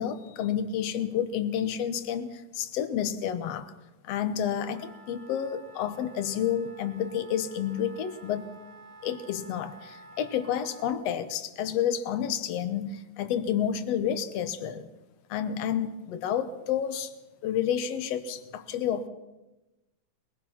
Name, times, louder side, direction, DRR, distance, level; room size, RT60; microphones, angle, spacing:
voice 1, 0.0-3.7 4.0-8.5 9.0-14.9 15.3-17.1 17.4-19.1, left 9 dB, 65° left, 10 dB, 1.7 m, -30 dB
Wind instrument woodwind instrument, 4.7-11.0, right 1 dB, 60° right, 3.2 m, -51 dB
22.5 x 20.0 x 5.9 m, 1.0 s
omnidirectional pair, 4.3 m